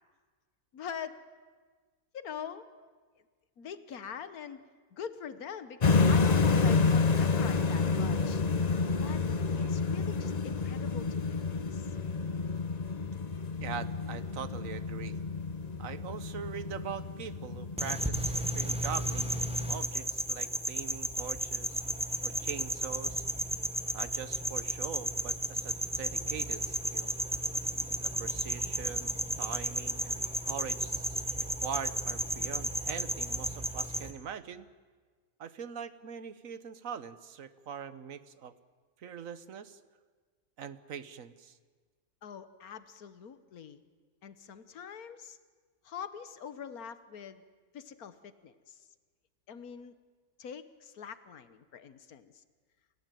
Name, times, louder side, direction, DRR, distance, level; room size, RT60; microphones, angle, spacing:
voice 1, 0.7-1.2 2.1-2.9 3.6-4.6 4.9-8.4 9.0-9.2 9.6-11.9 42.2-43.8 44.2-45.4 45.8-47.4 47.7-48.9 49.5-49.9 50.4-52.4, left 7 dB, 85° left, 13 dB, 1.7 m, -44 dB
sound 1, 5.8-19.8, left 4 dB, 35° left, 0.9 m, -29 dB
voice 2, 13.6-15.2 15.8-21.8 22.2-23.3 23.9-27.1 28.0-29.1 29.4-34.7 35.4-38.5 39.0-39.8 40.6-41.6, right 7 dB, 70° right, 14 dB, 1.4 m, -42 dB
sound 2, 17.8-34.1, right 1 dB, 5° right, 1.4 m, -33 dB
29.0 x 16.0 x 9.2 m, 1.5 s
omnidirectional pair, 1.5 m